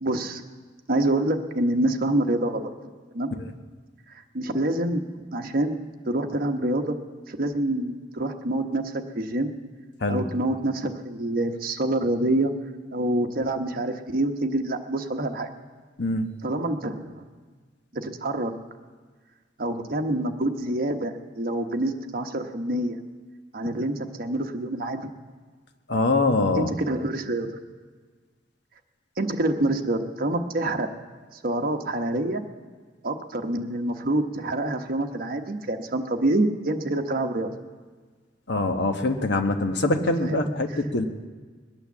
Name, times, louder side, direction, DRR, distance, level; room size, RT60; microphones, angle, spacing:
voice 1, 0.0-0.4 0.9-2.7 3.1-3.3 4.3-5.0 5.3-5.8 6.1-7.0 7.3-8.8 9.1-9.5 10.1-12.5 12.9-15.5 16.4-17.3 17.9-18.5 19.6-23.0 23.5-25.1 26.6-27.5 29.2-30.9 31.4-32.4 33.0-37.5 40.2-40.4 40.7-40.8, right 1 dB, 55° right, 5 dB, 1.1 m, -26 dB
voice 2, 16.0-16.3 25.9-26.7 38.5-41.0, left 2 dB, 65° left, 6 dB, 1.1 m, -24 dB
21.0 x 8.9 x 7.2 m, 1.5 s
head